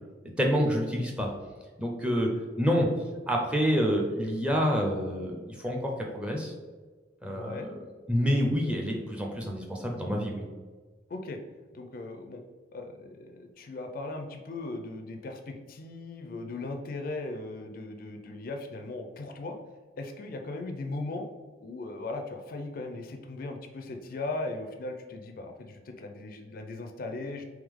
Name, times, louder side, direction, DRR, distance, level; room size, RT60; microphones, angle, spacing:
voice 1, 0.4-1.3 1.8-2.3 2.6-2.9 3.3-6.5 7.2-7.8 8.1-10.5, equal, 5° right, 0 dB, 0.5 m, -27 dB
voice 2, 7.3-7.7 11.1-11.4 11.7-12.4 12.7-19.6 20.0-21.3 21.6-27.4, left 2 dB, 50° left, 5 dB, 0.4 m, -38 dB
3.5 x 3.1 x 3.5 m, 1.4 s
head